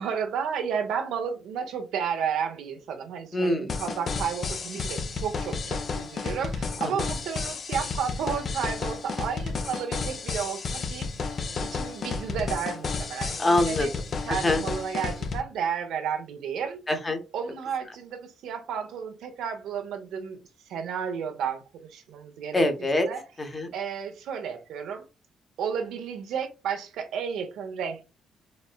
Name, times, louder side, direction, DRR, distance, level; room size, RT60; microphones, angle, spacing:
voice 1, 0.0-11.1 11.6-13.9 14.3-16.8 17.3-20.4 20.7-22.6 23.1-23.2 23.7-25.1 25.6-28.0, right 7 dB, 80° right, 0.8 m, -32 dB
voice 2, 3.3-3.7 6.8-7.1 13.4-13.9 14.3-14.6 16.9-17.2 22.5-23.1 23.4-23.7, left 1 dB, 25° left, 0.8 m, -25 dB
sound 1, 3.7-15.4, left 4 dB, 50° left, 0.5 m, -32 dB
4.2 x 2.1 x 2.3 m
cardioid pair, 90°, 0 cm